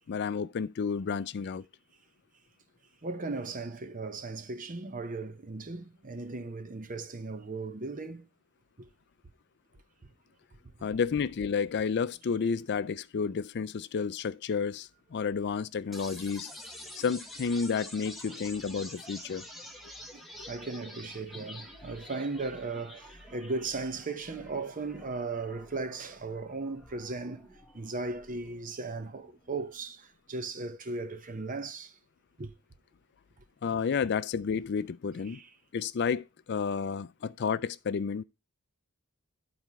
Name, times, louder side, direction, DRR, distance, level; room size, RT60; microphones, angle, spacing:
voice 1, 0.1-1.6 10.8-16.5 17.0-19.4 33.6-35.4 35.7-38.2, left 6 dB, 50° left, 0.4 m, -31 dB
voice 2, 3.0-8.3 8.8-8.9 18.3-18.4 19.3-19.4 19.6-19.9 20.1-27.5 27.7-31.9 32.4-32.5 35.3-35.5, right 3 dB, 35° right, 0.8 m, -37 dB
Morphing Drop, 15.9-29.9, left 1 dB, ahead, 1.2 m, -48 dB
11.0 x 4.3 x 4.6 m
head